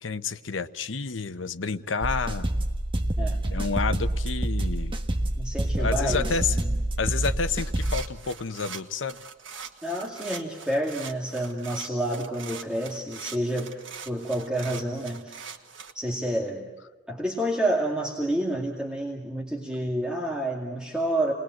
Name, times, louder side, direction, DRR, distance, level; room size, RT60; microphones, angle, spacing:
voice 1, 0.0-2.5 3.5-4.9 5.8-6.6 7.0-9.2, left 5 dB, 80° left, 12 dB, 0.9 m, -29 dB
sound 1, 2.0-8.0, right 1 dB, 25° right, 1.4 m, -27 dB
voice 2, 5.4-6.6 9.8-13.7 14.1-15.5 15.9-16.7 17.1-21.3, right 1 dB, 5° right, -2 dB, 2.3 m, -29 dB
sound 2, 7.6-15.9, right 6 dB, 80° right, 1.8 m, -42 dB
28.5 x 21.0 x 7.8 m, 1.2 s
head